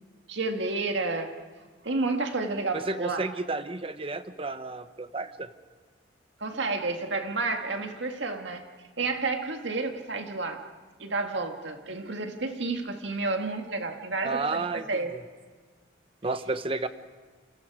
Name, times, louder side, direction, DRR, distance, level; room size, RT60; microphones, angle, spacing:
voice 1, 0.3-1.4 1.8-3.3 6.4-8.7 9.0-10.7 11.0-15.2, right 3 dB, 70° right, 4 dB, 1.8 m, -30 dB
voice 2, 2.7-5.5 14.2-15.2 16.2-16.9, right 3 dB, 30° right, 11 dB, 0.9 m, -32 dB
28.0 x 27.5 x 4.9 m, 1.4 s
head